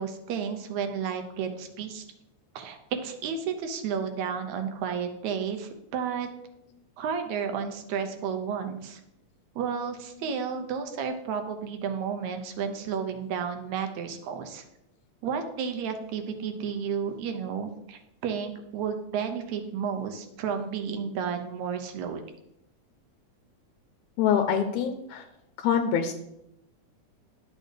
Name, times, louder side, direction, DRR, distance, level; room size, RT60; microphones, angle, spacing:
voice 1, 0.0-2.0 2.6-6.3 7.0-9.0 9.6-14.6 15.2-22.2, right 7 dB, 75° right, 6 dB, 2.1 m, -32 dB
voice 2, 24.2-25.3 25.6-26.1, left 8 dB, 90° left, 5 dB, 2.0 m, -25 dB
11.5 x 6.5 x 3.3 m, 0.83 s
omnidirectional pair, 3.4 m